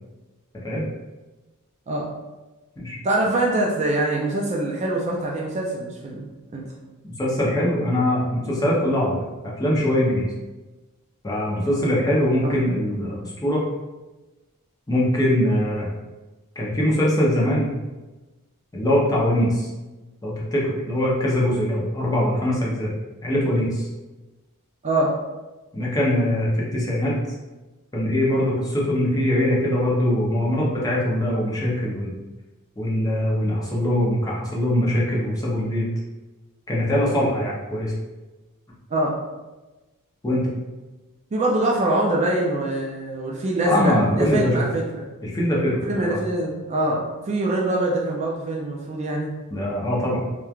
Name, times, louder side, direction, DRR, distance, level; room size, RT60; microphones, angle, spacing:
voice 1, 3.0-6.3 6.5-6.6 12.4-12.6 24.8-25.1 38.9-39.1 41.3-45.0 45.9-49.3, right 1 dB, 30° right, -2 dB, 0.3 m, -24 dB
voice 2, 7.2-9.2 9.4-10.3 11.2-13.7 14.9-15.9 16.6-17.7 18.7-19.7 20.2-22.9 23.2-23.9 25.7-27.1 27.9-32.1 32.8-35.9 36.7-37.9 40.2-40.5 43.6-44.7 45.2-46.2 49.5-50.2, left 1 dB, 15° left, -5 dB, 0.6 m, -22 dB
3.0 x 2.2 x 2.3 m, 1.1 s
head